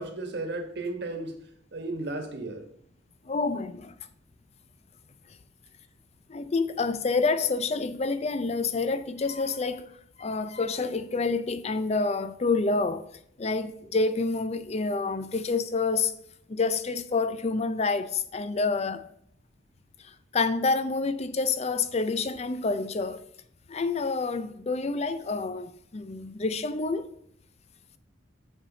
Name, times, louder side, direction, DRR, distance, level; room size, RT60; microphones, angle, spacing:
voice 1, 0.0-1.4 1.7-2.6, right 2 dB, 60° right, 1.3 m, -34 dB
voice 2, 3.3-3.9 6.3-9.9 10.2-13.1 13.4-16.1 16.5-19.0 20.0-23.2 23.7-27.1, left 3 dB, 35° left, 0.5 m, -28 dB
7.2 x 6.3 x 3.9 m
head